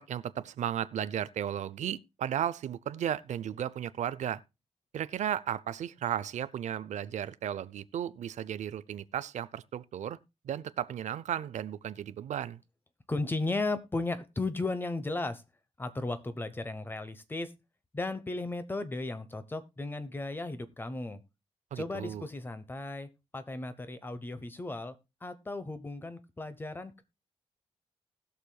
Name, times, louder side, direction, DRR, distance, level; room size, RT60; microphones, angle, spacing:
voice 1, 0.0-4.4 4.9-10.2 10.4-12.6 21.7-22.3, right 10 dB, 90° right, 0.6 m, -34 dB
voice 2, 13.1-15.4 15.8-17.5 17.9-21.2 21.8-27.0, left 2 dB, 15° left, 0.8 m, -35 dB
20.0 x 6.6 x 2.2 m
wide cardioid pair, 175°, 12 cm